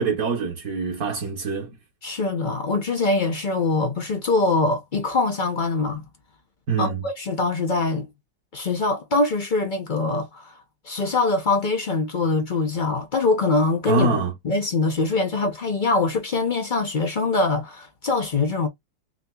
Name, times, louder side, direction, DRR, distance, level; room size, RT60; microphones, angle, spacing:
voice 1, 0.0-1.8 6.7-7.0 13.9-14.3, right 4 dB, 55° right, 1.4 m, -24 dB
voice 2, 2.0-6.0 6.8-8.1 8.5-10.5 10.8-14.1 14.4-18.7, left 3 dB, 55° left, 0.5 m, -23 dB
6.3 x 2.8 x 2.3 m
omnidirectional pair, 2.0 m